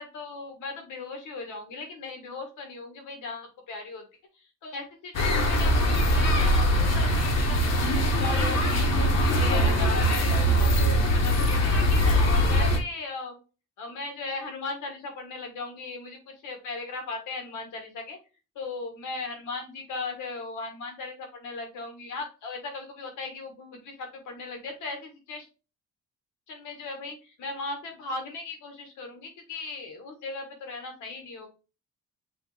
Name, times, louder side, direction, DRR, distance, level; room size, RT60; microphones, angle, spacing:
voice 1, 0.0-4.0 4.4-4.8 5.2-8.8 9.2-10.9 11.1-13.3 13.8-16.2 16.4-18.2 18.5-25.5 26.5-31.5, left 3 dB, 80° left, 4 dB, 1.6 m, -37 dB
sound 1, 5.1-12.8, equal, 60° left, 1.1 m, -22 dB
6.3 x 2.5 x 3.2 m, 0.32 s
cardioid pair, 90°, 30 cm